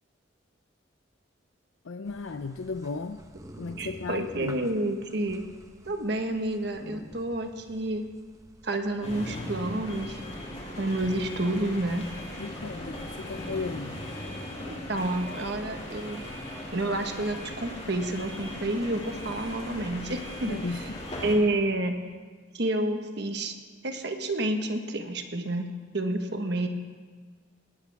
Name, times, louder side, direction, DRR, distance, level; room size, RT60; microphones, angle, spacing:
voice 1, 1.8-3.2 3.5-4.7 12.4-14.0 20.4-20.8, left 4 dB, 80° left, 8 dB, 0.5 m, -35 dB
sound 1, 2.0-16.4, right 1 dB, 15° right, 0.9 m, -50 dB
voice 2, 3.8-5.4 5.8-8.1 8.6-10.2 10.8-12.1 14.6-16.2 16.7-20.6 21.2-22.0 22.5-23.5 23.8-25.7 25.9-26.7, right 1 dB, 55° right, 5 dB, 1.4 m, -29 dB
sound 2, 9.0-21.4, left 1 dB, 35° left, 2.9 m, -38 dB
20.0 x 16.0 x 3.5 m, 1.5 s
head